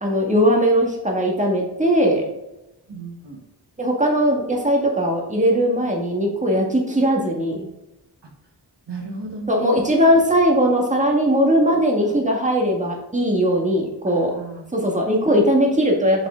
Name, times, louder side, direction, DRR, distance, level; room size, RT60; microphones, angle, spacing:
voice 1, 0.0-2.2 3.8-7.7 9.5-14.4 14.7-16.3, equal, 20° right, 0 dB, 1.8 m, -19 dB
voice 2, 2.9-3.4 8.2-8.3 8.9-9.8 11.7-12.2 14.1-14.7, right 2 dB, 80° right, 1 dB, 1.5 m, -35 dB
5.9 x 5.8 x 3.8 m, 0.95 s
wide cardioid pair, 75°, 41 cm